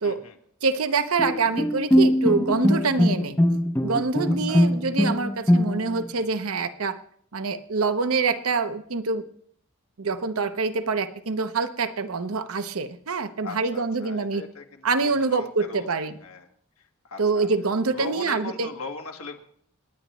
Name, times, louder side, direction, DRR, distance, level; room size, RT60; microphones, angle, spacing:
voice 1, 0.0-0.4 4.5-4.7 13.4-15.9 16.2-16.5 17.0-17.5 17.9-19.4, left 3 dB, 85° left, 3 dB, 1.7 m, -39 dB
voice 2, 0.6-3.4 3.8-7.0 7.3-9.2 10.0-14.4 14.8-16.1 17.2-18.7, right 4 dB, 85° right, 10 dB, 0.8 m, -25 dB
Bowed string instrument, 1.2-6.0, equal, 10° left, 0.6 m, -21 dB
28.0 x 10.5 x 3.1 m, 0.64 s
head